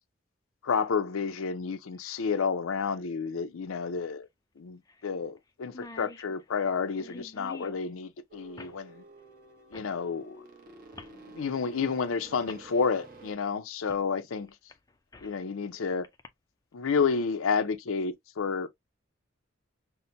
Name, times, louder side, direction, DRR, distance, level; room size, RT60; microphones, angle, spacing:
voice 1, 0.6-4.3 4.6-9.0 9.7-10.4 11.3-14.5 15.2-16.1 16.7-18.7, left 5 dB, 80° left, 0.5 m, -30 dB
sound 1, 1.9-2.0 3.8-3.9 4.2-4.3 4.9-5.1 5.4-5.5 5.6-7.8 8.6-8.8 9.7-9.9 10.9-11.2 12.0-12.1 12.5-12.6 13.9-14.1 14.5-15.4 16.0-16.3, left 2 dB, 15° left, 0.4 m, -47 dB
sound 2, 8.3-13.3, right 2 dB, 45° right, 1.0 m, -51 dB
5.6 x 2.1 x 2.6 m
head